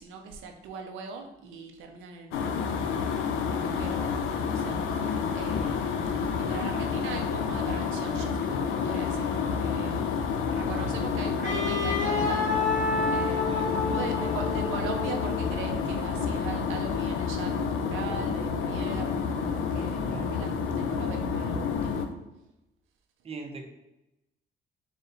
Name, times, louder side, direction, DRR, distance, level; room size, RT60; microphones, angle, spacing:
voice 1, 0.0-2.7 3.5-4.1 4.4-4.9 5.3-5.8 6.4-12.8 13.1-13.4 13.8-22.0, right 5 dB, 85° right, 3 dB, 0.5 m, -40 dB
sound 1, 2.3-22.1, left 6 dB, 80° left, 0.5 m, -29 dB
Wind instrument woodwind instrument, 11.4-15.5, left 4 dB, 40° left, 1.4 m, -29 dB
voice 2, 20.0-20.4 23.2-23.6, right 3 dB, 30° right, 4 dB, 0.6 m, -40 dB
4.1 x 2.1 x 3.7 m, 0.92 s
cardioid pair, 90°, 20 cm